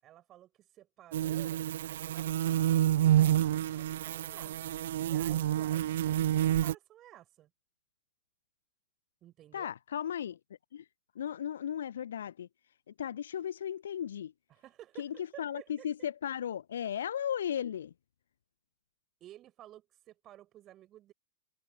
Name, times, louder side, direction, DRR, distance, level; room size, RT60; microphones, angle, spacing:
voice 1, 0.0-4.6 5.0-7.5 9.2-9.7 14.5-15.9 19.2-21.1, right 13 dB, 30° right, 6.5 m, -54 dB
sound 1, 1.1-6.8, right 12 dB, 60° right, 0.5 m, -28 dB
voice 2, 9.5-10.4 10.7-10.8 11.1-12.5 13.0-14.3 15.0-17.9, left 9 dB, 65° left, 0.9 m, -36 dB
figure-of-eight pair, 90°, 0 cm